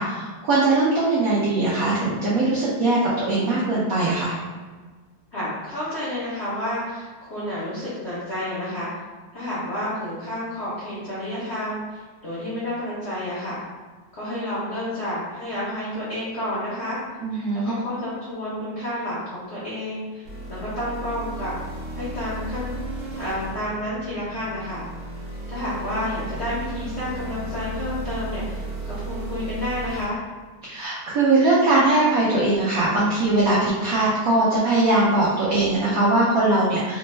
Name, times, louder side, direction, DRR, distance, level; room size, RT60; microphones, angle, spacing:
voice 1, 0.0-4.3 17.2-17.7 30.6-37.0, right 2 dB, 80° right, -7 dB, 0.8 m, -21 dB
voice 2, 5.3-8.9 9.3-13.6 14.1-17.0 17.6-21.5 21.9-22.7 23.1-24.8 25.5-30.2, left 1 dB, 70° left, -10 dB, 0.6 m, -30 dB
sound 1, 20.2-30.0, right 1 dB, 50° right, 0.9 m, -34 dB
3.3 x 2.1 x 3.1 m, 1.4 s
omnidirectional pair, 2.2 m